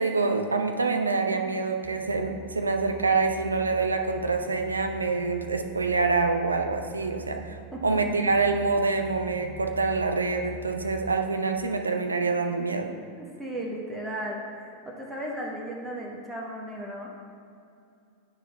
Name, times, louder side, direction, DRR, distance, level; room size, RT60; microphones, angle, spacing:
voice 1, 0.0-12.9, right 4 dB, 75° right, 5 dB, 0.4 m, -26 dB
sound 1, 1.8-11.2, right 1 dB, 10° left, 0.4 m, -44 dB
voice 2, 13.2-17.1, right 1 dB, 5° right, -3 dB, 0.8 m, -35 dB
9.0 x 6.1 x 2.3 m, 2.5 s
figure-of-eight pair, 90°, 0 cm